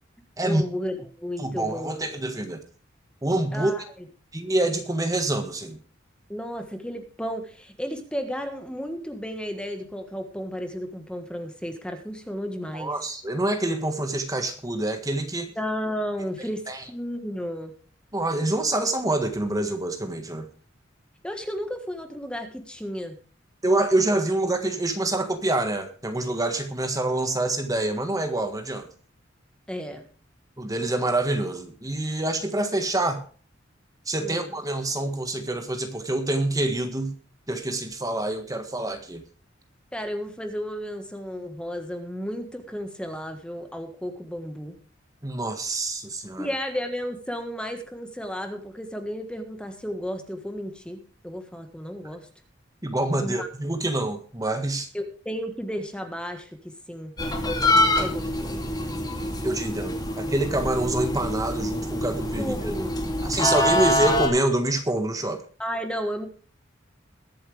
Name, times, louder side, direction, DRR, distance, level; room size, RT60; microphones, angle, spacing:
voice 1, 0.4-2.1 3.5-3.8 6.3-12.9 15.5-16.6 16.9-17.7 21.2-23.2 29.7-30.0 34.2-34.5 39.9-44.8 46.4-52.3 53.2-53.5 54.9-57.1 58.0-58.7 62.4-63.6 65.6-66.3, equal, 5° left, 6 dB, 1.5 m, -33 dB
voice 2, 1.4-2.6 3.2-3.7 4.3-5.8 12.7-15.5 16.7-16.8 18.1-20.5 23.6-28.9 30.6-33.2 34.1-37.2 37.5-39.2 45.2-46.5 52.8-54.9 59.4-62.5 63.2-65.4, right 2 dB, 20° right, 6 dB, 1.5 m, -26 dB
sound 1, 57.2-64.3, left 1 dB, 20° left, 2.7 m, -25 dB
22.0 x 7.8 x 3.4 m, 0.40 s
head